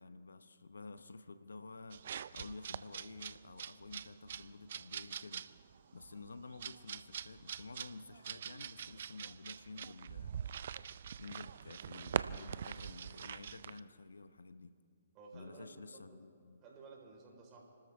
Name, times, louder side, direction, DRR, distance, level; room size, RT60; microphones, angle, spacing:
voice 1, 0.0-5.6 5.9-10.4 11.2-14.8 15.3-16.6, left 3 dB, 85° left, 12 dB, 0.8 m, -51 dB
sound 1, 1.9-13.8, right 8 dB, 60° right, 0.4 m, -44 dB
voice 2, 15.1-16.2 16.6-17.6, right 4 dB, 30° right, -1 dB, 4.2 m, -55 dB
29.5 x 13.0 x 3.5 m, 2.5 s
hypercardioid pair, 135°, 0 cm